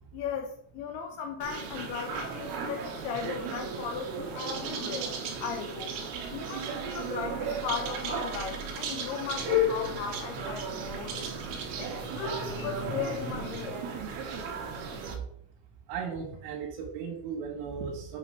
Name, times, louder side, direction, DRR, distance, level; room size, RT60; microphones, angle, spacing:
voice 1, 0.1-5.1 5.4-5.9 6.3-11.3 11.8-13.8, left 7 dB, 85° left, 4 dB, 2.4 m, -37 dB
sound 1, 1.4-15.2, right 1 dB, 70° right, 2.7 m, -34 dB
voice 2, 15.9-18.2, right 6 dB, 90° right, -1 dB, 3.5 m, -36 dB
8.0 x 3.3 x 5.3 m, 0.69 s
omnidirectional pair, 5.3 m